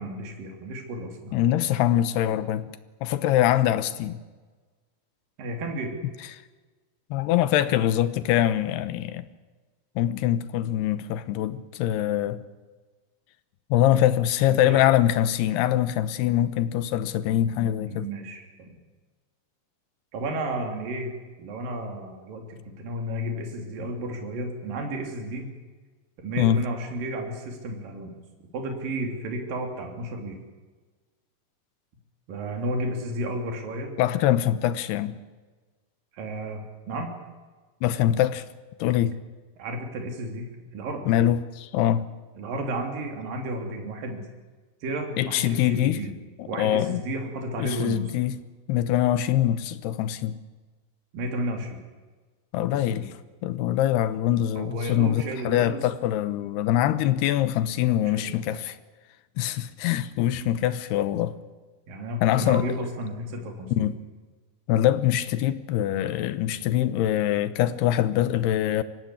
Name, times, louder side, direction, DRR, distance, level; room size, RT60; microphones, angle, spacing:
voice 1, 0.0-1.4 5.4-5.9 14.5-14.8 17.8-18.7 20.1-21.1 21.4-25.5 26.2-28.2 28.5-30.4 32.3-34.0 36.1-37.1 39.6-41.1 42.4-44.3 44.8-46.1 46.5-48.1 51.1-51.8 52.7-53.1 54.5-55.9 58.0-58.2 60.4-60.5 61.9-63.9, right 1 dB, 60° right, 4.7 m, -32 dB
voice 2, 1.3-2.7 3.0-4.2 7.1-9.3 10.0-12.4 13.7-18.1 26.4-26.6 34.0-35.2 37.8-38.4 38.8-39.2 41.1-42.1 45.2-46.0 46.4-47.0 47.6-48.4 48.7-50.4 52.5-53.1 53.4-58.8 59.4-61.4 62.2-62.7 63.7-64.0 64.7-68.8, left 12 dB, 80° left, 3.0 m, -23 dB
23.5 x 17.0 x 9.8 m
omnidirectional pair, 4.7 m